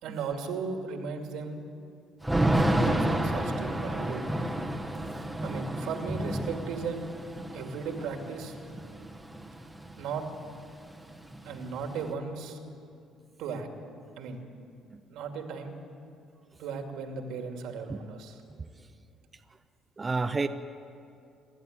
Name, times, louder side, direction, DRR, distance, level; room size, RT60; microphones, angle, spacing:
voice 1, 0.0-1.6 2.7-4.2 5.4-7.0 7.5-8.5 10.0-10.2 11.4-12.6 13.4-13.7 14.2-14.4 15.1-15.7 16.6-18.4, right 5 dB, 85° right, 3 dB, 2.5 m, -36 dB
Thunder / Rain, 2.2-10.1 10.4-10.5 10.8-12.1, right 1 dB, 5° right, 1.5 m, -30 dB
voice 2, 20.0-20.5, right 3 dB, 20° right, 8 dB, 0.6 m, -30 dB
27.5 x 11.5 x 9.4 m, 2.5 s
cardioid pair, 140°, 0 cm